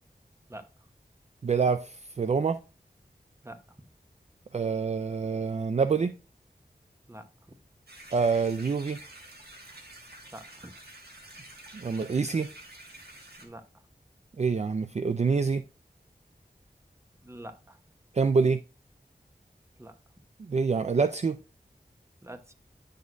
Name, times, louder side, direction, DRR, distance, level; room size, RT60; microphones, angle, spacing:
voice 1, 0.5-0.9 3.4-3.6 7.1-7.3 10.3-10.7 13.4-13.6 17.2-17.8 19.8-20.0 22.2-22.5, right 1 dB, 15° right, 0.9 m, -45 dB
voice 2, 1.4-2.6 4.5-6.1 8.1-9.0 11.7-12.5 14.4-15.6 18.1-18.6 20.4-21.4, right 5 dB, 45° right, 0.4 m, -26 dB
sound 1, 7.9-13.5, right 2 dB, 80° right, 1.7 m, -49 dB
9.5 x 6.3 x 2.5 m
wide cardioid pair, 70°, 16 cm